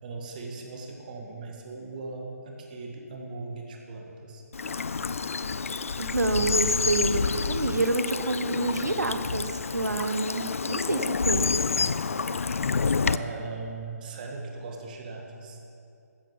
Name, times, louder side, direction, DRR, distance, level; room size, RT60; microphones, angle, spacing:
voice 1, 0.0-4.4 13.0-15.6, right 3 dB, 30° right, 1 dB, 1.8 m, -39 dB
Bird vocalization bird call bird song / Stream, 4.5-13.2, left 5 dB, 55° left, 0.4 m, -28 dB
voice 2, 6.0-11.5, right 3 dB, 70° right, 9 dB, 1.1 m, -28 dB
14.5 x 8.4 x 7.1 m, 2.6 s
figure-of-eight pair, 145°, 9 cm